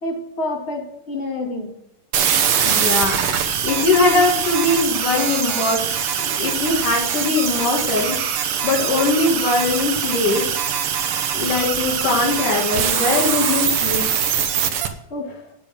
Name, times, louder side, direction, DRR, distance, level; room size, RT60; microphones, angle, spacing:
voice 1, 0.0-1.8 15.1-15.5, left 2 dB, 25° left, 2 dB, 2.1 m, -28 dB
sound 1, 2.1-14.9, right 8 dB, 60° right, 1.6 m, -22 dB
voice 2, 2.6-3.2 3.6-5.9 6.2-8.2 8.6-10.6 11.3-14.2, left 3 dB, 80° left, -4 dB, 3.7 m, -21 dB
10.5 x 8.2 x 6.2 m, 0.78 s
omnidirectional pair, 3.6 m